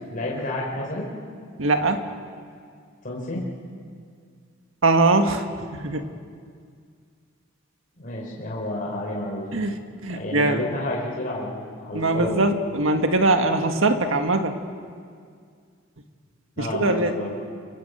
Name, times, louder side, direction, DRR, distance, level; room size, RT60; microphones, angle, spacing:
voice 1, 0.1-1.1 3.0-3.5 8.0-9.5 10.1-12.4 16.6-17.4, left 1 dB, 45° left, -3 dB, 4.3 m, -30 dB
voice 2, 1.6-2.1 4.8-5.5 5.7-6.1 9.5-10.6 11.9-14.6 16.6-17.1, right 2 dB, 70° right, 6 dB, 1.8 m, -22 dB
29.5 x 24.0 x 8.0 m, 2.1 s
head